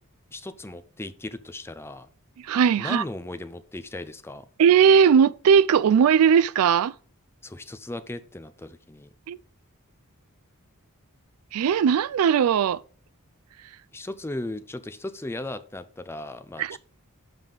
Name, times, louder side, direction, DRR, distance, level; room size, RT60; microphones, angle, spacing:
voice 1, 0.3-2.1 2.8-4.5 7.4-9.1 13.9-16.6, left 1 dB, 10° left, 0.5 m, -36 dB
voice 2, 2.4-3.0 4.6-6.9 9.3-9.4 11.5-12.8 16.6-16.8, right 7 dB, 75° right, 0.3 m, -18 dB
7.4 x 5.3 x 3.9 m
head